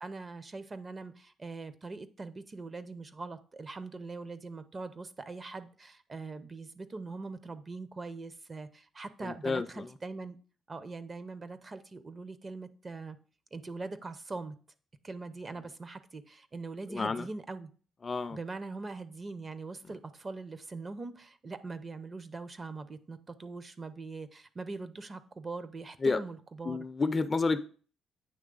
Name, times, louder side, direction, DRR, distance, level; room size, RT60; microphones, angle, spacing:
voice 1, 0.0-10.4 10.7-13.2 13.5-14.6 15.0-17.7 18.3-26.8, right 3 dB, 30° right, 13 dB, 0.5 m, -42 dB
voice 2, 9.2-9.9 16.9-17.3 18.0-18.4 26.0-26.2 26.6-27.7, left 4 dB, 30° left, 12 dB, 0.4 m, -30 dB
8.7 x 3.1 x 3.8 m, 0.41 s
cardioid pair, 90°, 0 cm